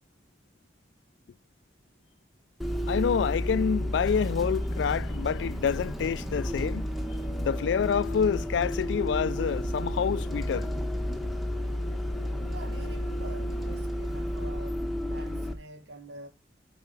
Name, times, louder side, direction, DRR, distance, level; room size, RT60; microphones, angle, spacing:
Bus, 2.6-15.5, equal, ahead, 1.0 m, -31 dB
voice 1, 2.9-6.9 7.4-10.7, left 6 dB, 85° left, 0.3 m, -27 dB
voice 2, 12.5-16.3, right 2 dB, 80° right, 1.8 m, -46 dB
8.1 x 5.0 x 3.9 m
head